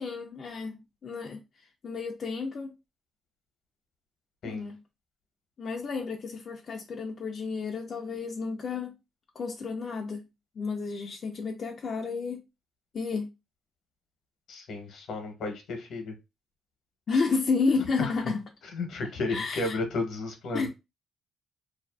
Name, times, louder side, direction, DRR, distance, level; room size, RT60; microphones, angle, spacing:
voice 1, 0.0-1.4 1.8-2.7 4.4-4.8 5.6-8.9 9.4-10.3 10.6-12.4 12.9-13.3 17.1-18.4 19.3-19.8 20.5-20.7, left 4 dB, 50° left, 0.4 m, -31 dB
voice 2, 14.5-16.1 18.0-18.1 18.7-20.7, left 3 dB, 70° left, 0.8 m, -33 dB
2.4 x 2.4 x 2.2 m
cardioid pair, 90°, 0 cm